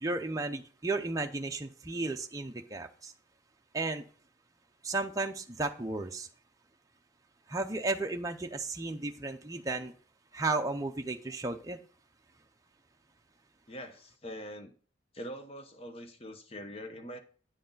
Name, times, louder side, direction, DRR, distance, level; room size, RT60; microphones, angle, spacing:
voice 1, 0.0-3.1 3.7-4.0 4.8-6.3 7.5-9.9 10.3-11.8, right 3 dB, 20° right, 4 dB, 0.6 m, -34 dB
voice 2, 13.7-14.7 15.1-17.2, equal, 30° left, 7 dB, 0.9 m, -43 dB
9.3 x 6.5 x 3.9 m, 0.42 s
head